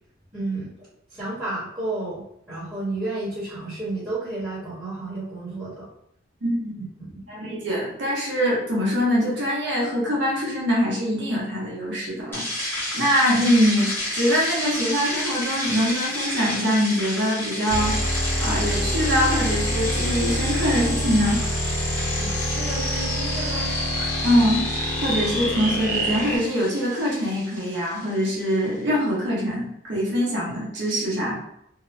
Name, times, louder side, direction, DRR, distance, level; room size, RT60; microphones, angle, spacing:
voice 1, 0.3-0.9 1.1-5.9 6.8-7.2 22.2-24.3, right 2 dB, 10° right, -13 dB, 1.0 m, -32 dB
voice 2, 6.4-6.8 7.3-18.0 18.4-21.4 24.2-24.6 25.0-31.4, equal, 65° right, -4 dB, 0.8 m, -23 dB
sound 1, 12.3-28.6, left 1 dB, 10° left, 0.9 m, -32 dB
sound 2, 17.7-26.4, equal, 40° left, 0.7 m, -26 dB
2.8 x 2.0 x 2.5 m, 0.73 s
head